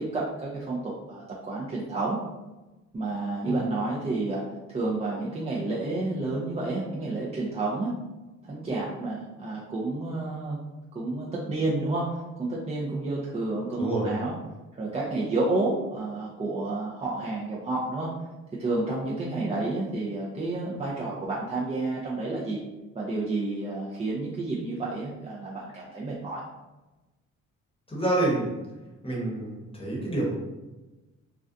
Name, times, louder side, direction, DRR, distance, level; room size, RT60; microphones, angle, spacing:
voice 1, 0.0-2.2 2.9-4.4 4.7-7.9 8.4-10.6 10.9-14.3 14.8-18.1 18.6-22.6 22.9-26.4, right 2 dB, 20° right, -5 dB, 0.4 m, -30 dB
voice 2, 13.8-14.1 27.9-28.6 29.0-30.3, right 2 dB, 20° left, -3 dB, 0.9 m, -27 dB
2.4 x 2.2 x 2.5 m, 1.1 s
cardioid pair, 90°, 30 cm